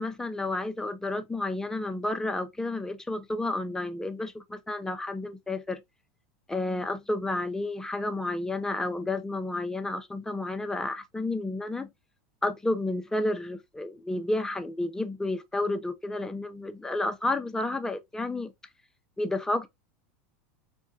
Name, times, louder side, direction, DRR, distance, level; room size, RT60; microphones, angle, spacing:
voice 1, 0.0-5.8 6.5-11.9 12.4-18.5 19.2-19.7, left 2 dB, 10° left, 0.6 m, -31 dB
4.3 x 2.2 x 2.8 m
supercardioid pair, 120°, 7 cm